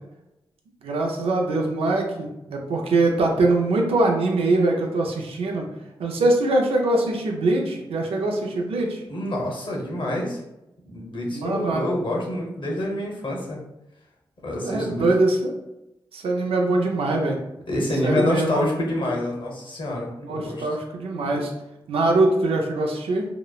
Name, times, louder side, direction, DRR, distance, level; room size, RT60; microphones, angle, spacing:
voice 1, 0.8-5.7 6.0-9.0 11.3-11.9 14.6-15.5 16.1-17.4 18.0-18.7 20.2-21.5 21.9-23.3, right 2 dB, 90° right, 1 dB, 0.4 m, -23 dB
voice 2, 9.1-10.4 10.8-13.6 14.4-15.1 17.7-20.7, left 1 dB, 60° left, -2 dB, 0.8 m, -27 dB
2.8 x 2.0 x 2.3 m, 0.92 s
cardioid pair, 50°, 9 cm